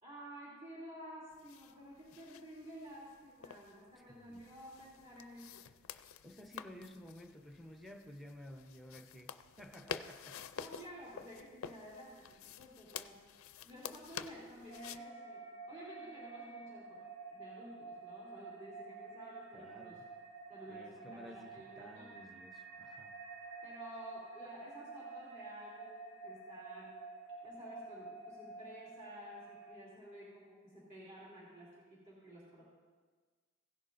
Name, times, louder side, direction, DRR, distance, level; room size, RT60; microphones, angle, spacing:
voice 1, 0.0-5.7 10.5-13.2 13.6-17.0 17.3-20.0 20.5-22.1 23.6-27.0 27.4-32.7, equal, 35° right, -8 dB, 2.9 m, -52 dB
sound 1, 1.3-15.0, left 8 dB, 70° left, 0.4 m, -50 dB
voice 2, 4.0-4.4 6.2-10.4 19.5-20.1 20.7-23.1, equal, ahead, 4 dB, 0.7 m, -53 dB
sound 2, 14.7-29.7, right 4 dB, 80° right, 2.8 m, -50 dB
16.5 x 11.0 x 2.6 m, 1.4 s
head